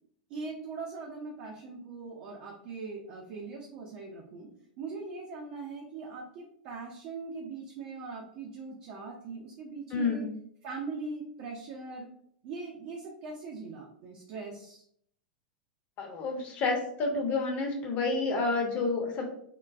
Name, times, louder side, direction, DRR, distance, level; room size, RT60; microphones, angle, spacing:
voice 1, 0.3-4.5 4.8-10.2 10.6-12.1 12.4-14.8, right 4 dB, 45° right, -1 dB, 0.5 m, -41 dB
voice 2, 9.9-10.2 16.0-19.3, left 3 dB, 35° left, 2 dB, 0.7 m, -29 dB
3.7 x 2.2 x 2.4 m, 0.68 s
figure-of-eight pair, 90°, 5 cm